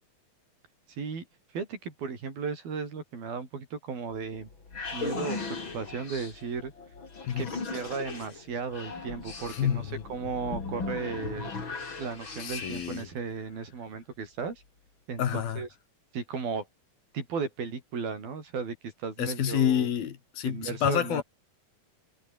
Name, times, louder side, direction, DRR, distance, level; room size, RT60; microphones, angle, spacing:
voice 1, 0.9-1.3 1.5-4.5 4.9-6.7 7.4-11.5 12.0-14.6 15.1-15.7 16.1-16.7 17.1-19.9 20.5-21.2, right 5 dB, 85° right, 7.1 m, -35 dB
sound 1, 4.1-13.2, left 4 dB, 35° left, 4.2 m, -38 dB
voice 2, 9.5-10.0 12.4-13.1 15.2-15.6 19.2-21.2, left 9 dB, 85° left, 4.3 m, -28 dB
omnidirectional pair, 4.1 m